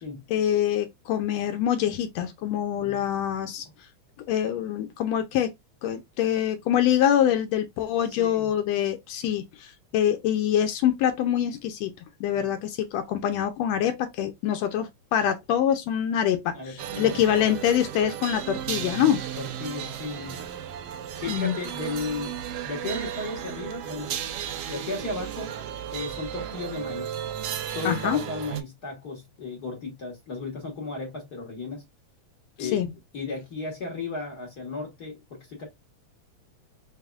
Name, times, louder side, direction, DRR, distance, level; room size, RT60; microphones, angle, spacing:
voice 1, 0.3-3.7 4.3-5.5 5.8-11.9 12.2-19.2 21.3-21.5 27.8-28.2 32.6-32.9, left 10 dB, 80° left, 1.6 m, -25 dB
voice 2, 8.1-8.5 12.3-12.6 16.5-17.2 19.0-20.4 21.2-22.3 22.6-24.2 24.7-25.5 25.9-27.2 27.7-31.8 32.6-32.8 33.1-35.7, left 3 dB, 50° left, 1.1 m, -35 dB
sound 1, 16.8-28.6, right 10 dB, 80° right, 1.4 m, -34 dB
4.7 x 3.4 x 2.3 m
omnidirectional pair, 3.4 m